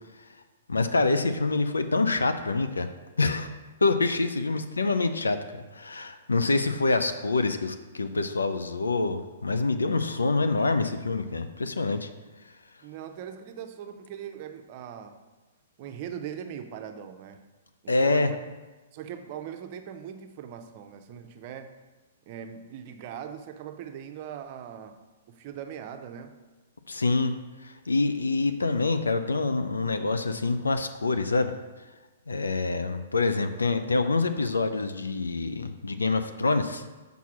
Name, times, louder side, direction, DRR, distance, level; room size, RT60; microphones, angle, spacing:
voice 1, 0.7-2.9 3.2-3.5 3.8-12.1 17.9-18.3 26.9-27.3 27.6-31.5 32.3-36.8, left 3 dB, 90° left, 9 dB, 0.5 m, -26 dB
voice 2, 12.8-15.2 15.8-17.4 17.8-18.4 18.9-21.7 22.3-25.0 25.3-26.4, right 8 dB, 45° right, 7 dB, 0.7 m, -40 dB
5.3 x 4.7 x 5.9 m, 1.2 s
hypercardioid pair, 120°, 0 cm